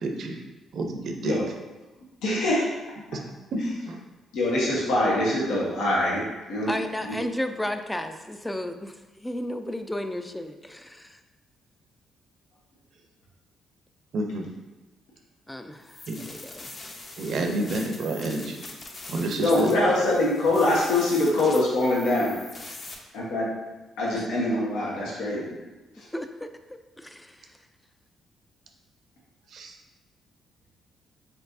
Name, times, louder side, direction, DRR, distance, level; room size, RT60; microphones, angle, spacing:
voice 1, 0.0-0.4 0.7-1.4 3.1-3.6 3.9-4.0 14.1-14.5 16.1-16.2 17.2-18.6 19.1-19.9 29.5-29.8, right 2 dB, 65° right, 4 dB, 0.6 m, -30 dB
voice 2, 2.2-2.6 4.3-6.2 6.5-6.7 7.0-7.2 19.4-22.3 23.1-23.5 24.0-25.6 25.9-26.1, left 1 dB, 85° left, -5 dB, 1.2 m, -24 dB
voice 3, 6.7-11.2 15.5-16.7 26.1-27.6, left 1 dB, 10° left, 7 dB, 0.3 m, -34 dB
sound 1, 15.8-22.9, left 2 dB, 40° left, 0.7 m, -43 dB
4.4 x 3.9 x 2.6 m, 1.1 s
cardioid pair, 90°, 0 cm